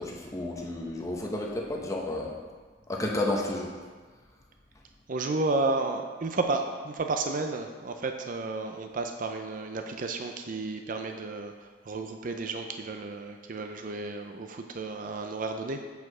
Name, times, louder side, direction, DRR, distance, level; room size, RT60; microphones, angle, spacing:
voice 1, 0.0-2.3 2.9-3.7, left 1 dB, 15° left, -1 dB, 0.8 m, -31 dB
voice 2, 5.1-15.9, right 3 dB, 45° right, 5 dB, 0.5 m, -32 dB
8.1 x 4.7 x 4.9 m, 1.4 s
head